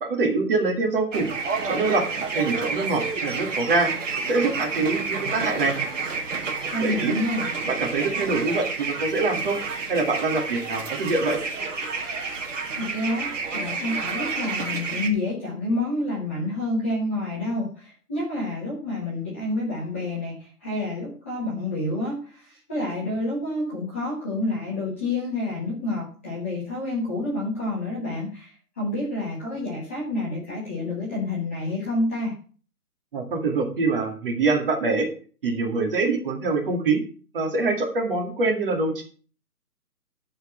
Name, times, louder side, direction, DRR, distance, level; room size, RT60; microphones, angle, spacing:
voice 1, 0.0-1.3 1.6-2.1 2.3-3.9 4.3-5.8 6.8-7.2 7.7-9.6 9.9-11.4 33.1-35.1 35.4-37.0 37.3-39.0, right 3 dB, 35° right, 2 dB, 2.3 m, -24 dB
sound 1, 1.1-15.1, right 4 dB, 50° right, 2.1 m, -30 dB
voice 2, 6.7-7.5 12.7-32.3, left 2 dB, 10° left, -7 dB, 0.9 m, -28 dB
11.5 x 4.5 x 7.1 m, 0.40 s
hypercardioid pair, 175°, 46 cm